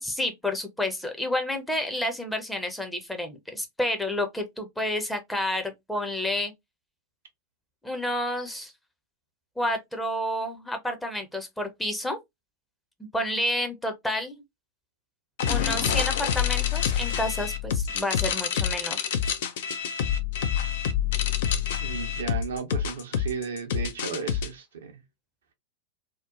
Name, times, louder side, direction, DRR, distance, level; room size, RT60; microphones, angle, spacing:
voice 1, 0.0-6.5 7.8-8.7 9.6-12.2 13.1-14.4 15.5-19.0, left 1 dB, 5° left, 0.6 m, -30 dB
sound 1, 15.4-24.5, left 9 dB, 55° left, 0.4 m, -27 dB
voice 2, 21.8-24.9, right 5 dB, 65° right, 0.6 m, -34 dB
2.8 x 2.1 x 2.4 m
figure-of-eight pair, 90°, 0 cm